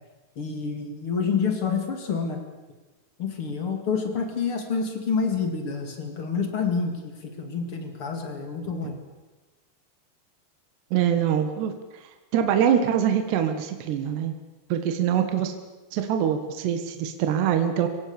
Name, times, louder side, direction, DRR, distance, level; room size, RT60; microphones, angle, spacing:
voice 1, 0.4-2.4 3.2-9.0, left 5 dB, 40° left, 5 dB, 2.0 m, -28 dB
voice 2, 10.9-11.7 12.3-14.3 14.7-15.5 15.9-17.9, right 9 dB, 65° right, 7 dB, 3.2 m, -24 dB
26.0 x 17.0 x 7.0 m, 1.2 s
omnidirectional pair, 5.8 m